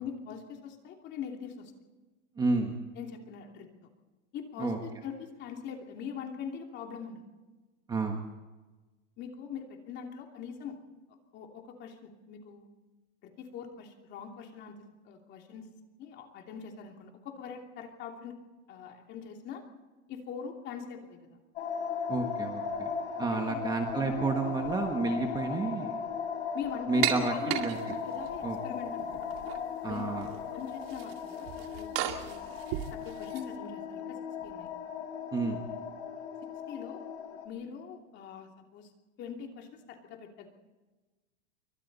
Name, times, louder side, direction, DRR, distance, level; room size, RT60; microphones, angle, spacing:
voice 1, 0.0-1.7 3.0-3.7 4.3-7.2 9.2-10.8 11.3-12.7 13.2-14.8 15.0-15.7 16.0-18.4 18.7-19.6 20.1-21.2 23.2-23.6 24.4-24.5 26.5-27.6 28.0-29.2 29.8-31.9 32.2-32.5 32.9-34.7 35.7-35.8 36.7-37.0 37.4-38.9 39.2-40.5, left 7 dB, 30° left, 3 dB, 2.9 m, -42 dB
voice 2, 2.4-2.7 4.6-4.8 7.9-8.2 22.1-22.9 23.2-26.0 26.9-27.9 28.4-28.6 29.8-30.3 35.3-35.6, right 3 dB, 10° right, 3 dB, 1.4 m, -30 dB
sound 1, 21.6-37.5, left 6 dB, 70° left, 4.9 m, -37 dB
sound 2, 27.0-28.3 29.0-29.6 29.9-30.4 30.7-33.4, right 12 dB, 55° right, 2.3 m, -35 dB
27.0 x 24.5 x 4.1 m, 1.2 s
supercardioid pair, 170°, 35 cm